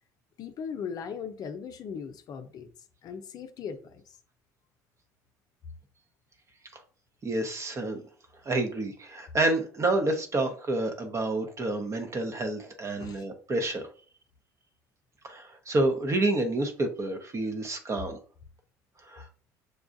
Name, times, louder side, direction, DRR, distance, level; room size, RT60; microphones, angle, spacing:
voice 1, 0.4-2.7 3.0-4.2 13.0-13.2, left 6 dB, 50° left, 0.6 m, -38 dB
voice 2, 7.2-8.0 8.4-13.9 15.2-18.2 19.1-19.3, right 2 dB, 35° right, 0.9 m, -29 dB
6.5 x 2.3 x 2.6 m
supercardioid pair, 75°, 8 cm